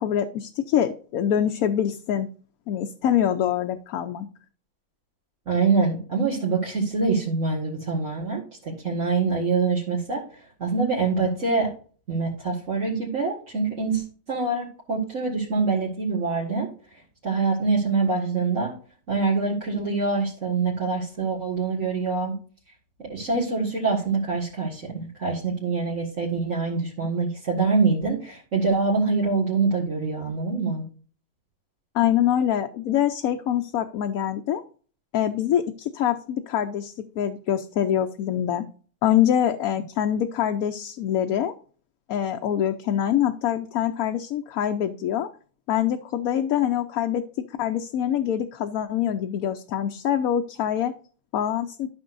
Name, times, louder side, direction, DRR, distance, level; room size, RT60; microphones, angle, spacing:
voice 1, 0.0-2.3 2.7-4.3 31.9-34.6 35.1-38.7 39.0-41.5 42.1-45.3 45.7-47.2 47.6-50.9 51.3-51.9, left 10 dB, 80° left, 6 dB, 1.1 m, -24 dB
voice 2, 5.5-10.2 10.6-11.7 12.1-16.7 17.2-18.7 19.1-22.3 23.0-30.8, right 4 dB, 60° right, -5 dB, 2.1 m, -25 dB
12.5 x 6.1 x 2.6 m, 0.41 s
omnidirectional pair, 1.5 m